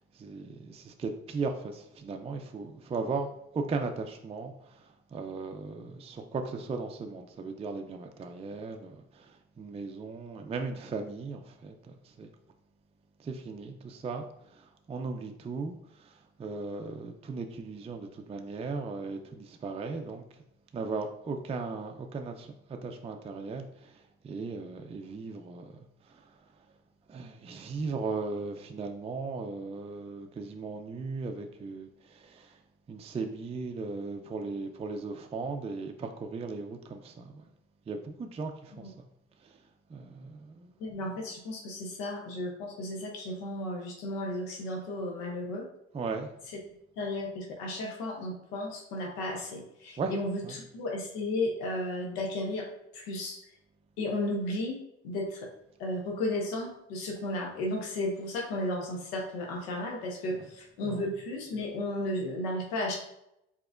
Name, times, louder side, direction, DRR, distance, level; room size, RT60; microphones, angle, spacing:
voice 1, 0.1-11.8 12.0-12.3 13.2-20.2 20.7-25.7 26.0-26.3 27.1-32.6 32.9-37.4 37.9-38.9 39.4-39.6 39.9-40.7 45.9-46.3 50.0-50.1 50.4-50.6 60.4-60.5 60.8-61.1, right 4 dB, 20° right, 4 dB, 0.4 m, -37 dB
voice 2, 40.8-45.7 47.0-52.7 52.9-53.4 54.0-54.8 55.0-55.5 55.8-63.0, left 1 dB, 85° left, 0 dB, 0.8 m, -34 dB
4.7 x 2.9 x 2.4 m, 0.80 s
hypercardioid pair, 60°, 31 cm